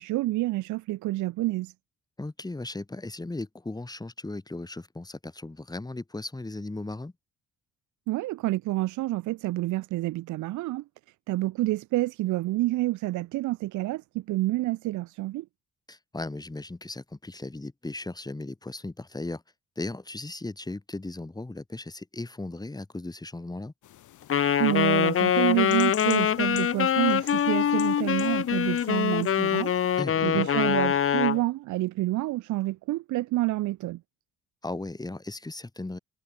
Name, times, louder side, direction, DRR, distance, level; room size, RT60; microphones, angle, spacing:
voice 1, 0.0-1.7 8.1-10.8 11.3-15.4 24.6-29.7 30.2-34.0, right 17 dB, 75° right, 0.5 m, -28 dB
voice 2, 2.2-7.1 15.9-19.4 19.8-23.7 30.0-30.5 34.6-36.0, left 2 dB, 15° left, 2.2 m, -37 dB
sound 1, 23.8-30.0, left 13 dB, 80° left, 4.2 m, -47 dB
Wind instrument woodwind instrument, 24.3-31.4, left 9 dB, 45° left, 1.1 m, -24 dB
cardioid pair, 90°, 30 cm